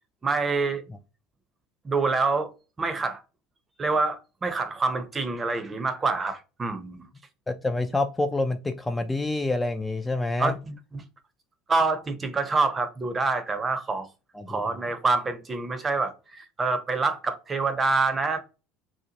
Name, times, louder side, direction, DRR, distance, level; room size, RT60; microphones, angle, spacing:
voice 1, 0.2-0.8 1.8-2.5 2.8-3.2 3.8-7.1 10.4-11.0 11.7-14.1 14.5-18.4, right 3 dB, 25° right, 0.6 m, -26 dB
voice 2, 7.5-10.5 14.4-14.6, left 2 dB, 15° left, 0.3 m, -27 dB
2.8 x 2.0 x 2.8 m
hypercardioid pair, 85°, 0 cm